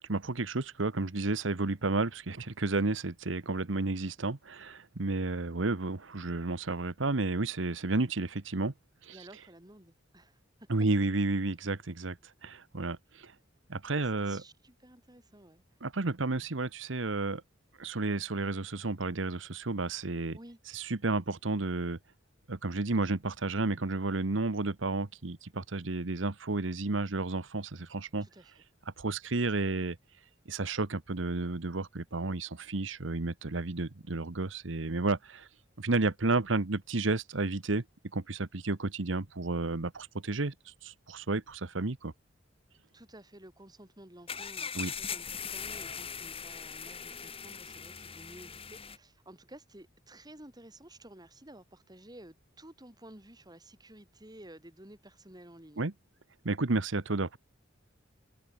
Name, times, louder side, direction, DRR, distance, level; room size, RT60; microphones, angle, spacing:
voice 1, 0.1-8.7 9.0-9.2 10.7-12.2 12.4-13.3 13.7-14.4 15.8-17.4 17.8-20.4 20.7-22.0 22.5-28.3 29.0-30.0 30.5-35.5 35.8-37.8 38.1-42.1 44.7-44.9 55.8-55.9 56.4-57.4, right 3 dB, 75° right, 1.2 m, -32 dB
voice 2, 9.1-10.4 13.9-15.6 20.3-20.6 28.2-28.5 42.9-55.8, right 1 dB, 20° right, 5.1 m, -53 dB
sound 1, 44.3-49.0, left 6 dB, 30° left, 2.8 m, -40 dB
head